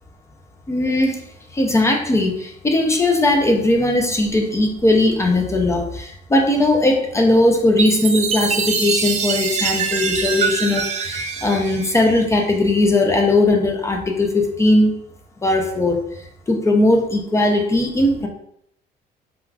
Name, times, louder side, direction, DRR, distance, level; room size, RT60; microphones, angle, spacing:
voice 1, 0.7-1.2 1.5-14.9 15.4-16.0 16.5-18.3, left 2 dB, 15° left, 2 dB, 0.4 m, -18 dB
Chime, 7.8-12.5, right 5 dB, 40° right, 0.4 m, -24 dB
2.4 x 2.3 x 3.2 m, 0.73 s
cardioid pair, 110°, 17 cm